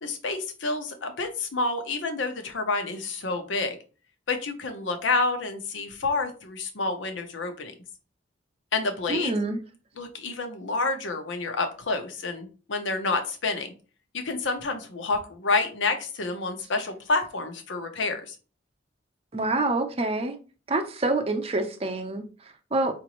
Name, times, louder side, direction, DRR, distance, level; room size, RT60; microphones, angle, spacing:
voice 1, 0.0-3.8 4.3-7.7 8.7-9.3 10.0-13.7 14.1-18.3, left 3 dB, 85° left, 0.8 m, -29 dB
voice 2, 9.1-9.6 19.3-20.4 20.7-22.9, right 2 dB, 30° right, 0.6 m, -27 dB
5.0 x 2.6 x 3.0 m
head